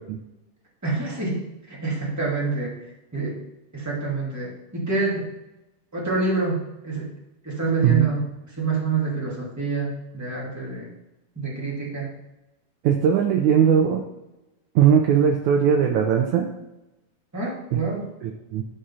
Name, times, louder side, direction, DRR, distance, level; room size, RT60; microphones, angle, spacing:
voice 1, 0.8-2.8 3.1-3.4 3.7-5.3 5.9-7.1 7.4-8.2 8.6-10.9 11.4-12.1 17.3-18.1, right 4 dB, 5° right, -4 dB, 1.6 m, -27 dB
voice 2, 12.8-14.0 14.8-16.5 17.7-17.8 18.2-18.6, right 8 dB, 75° right, 3 dB, 1.8 m, -19 dB
11.5 x 4.4 x 5.6 m, 0.94 s
omnidirectional pair, 4.1 m